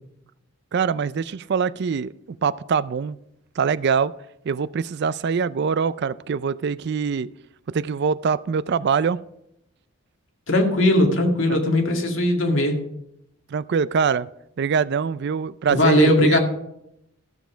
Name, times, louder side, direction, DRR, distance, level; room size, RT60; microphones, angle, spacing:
voice 1, 0.7-3.2 3.6-4.1 4.5-7.3 7.7-9.2 11.5-11.6 13.5-14.3 14.6-16.4, right 6 dB, 55° right, 18 dB, 0.4 m, -23 dB
voice 2, 10.5-12.8 15.7-16.4, left 1 dB, 65° left, 2 dB, 2.1 m, -19 dB
14.0 x 7.2 x 5.1 m, 0.81 s
head